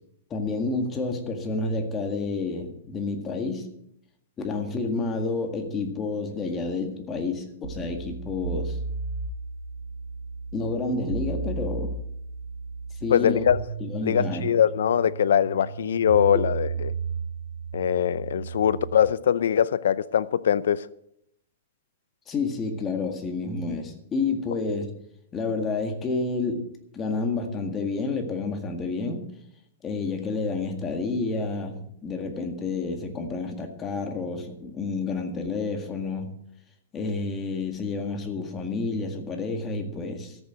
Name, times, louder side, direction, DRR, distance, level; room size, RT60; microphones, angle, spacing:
voice 1, 0.3-3.7 4.4-8.8 10.5-12.0 13.0-13.4 13.8-14.4 22.3-24.9 25.3-26.7 26.9-29.3 29.8-36.3 36.9-40.4, left 3 dB, 20° left, 1.9 m, -29 dB
sound 1, 7.6-19.1, right 5 dB, 80° right, 4.7 m, -34 dB
voice 2, 13.1-13.6 14.0-16.9 17.7-20.9, left 9 dB, 85° left, 0.5 m, -22 dB
13.5 x 6.9 x 8.1 m
hypercardioid pair, 155°, 0 cm